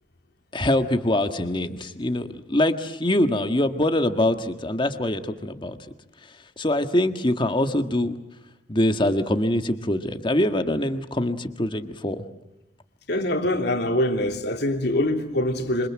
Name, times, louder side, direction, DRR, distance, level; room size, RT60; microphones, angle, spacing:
voice 1, 0.5-5.8 6.6-8.2 8.7-12.2, left 1 dB, 25° left, 1.6 m, -24 dB
voice 2, 13.1-15.9, left 1 dB, 60° left, 3.1 m, -24 dB
27.5 x 26.5 x 7.6 m
head